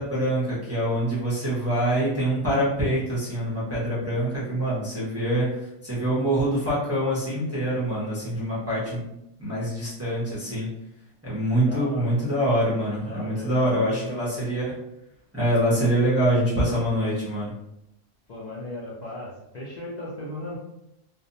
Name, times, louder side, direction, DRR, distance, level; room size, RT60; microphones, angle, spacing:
voice 1, 0.0-5.6 5.8-9.0 9.4-10.7 11.2-14.7 15.3-17.5, right 1 dB, 15° right, -8 dB, 0.5 m, -25 dB
voice 2, 11.7-12.2 13.0-14.5 18.3-20.6, left 1 dB, 55° left, -6 dB, 0.5 m, -36 dB
2.5 x 2.1 x 2.6 m, 0.83 s
omnidirectional pair, 1.4 m